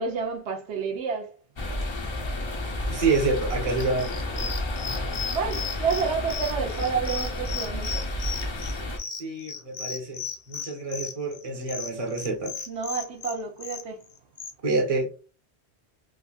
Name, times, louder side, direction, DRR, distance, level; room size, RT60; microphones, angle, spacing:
voice 1, 0.0-1.4 5.3-8.1 12.7-14.0, right 5 dB, 80° right, 1.0 m, -30 dB
sound 1, 1.6-9.0, left 1 dB, 35° left, 0.5 m, -31 dB
voice 2, 2.9-4.6 9.2-12.6 14.6-15.1, right 3 dB, 35° right, 1.0 m, -28 dB
sound 2, 3.8-14.5, left 6 dB, 60° left, 0.8 m, -36 dB
3.5 x 2.4 x 2.3 m
omnidirectional pair, 1.1 m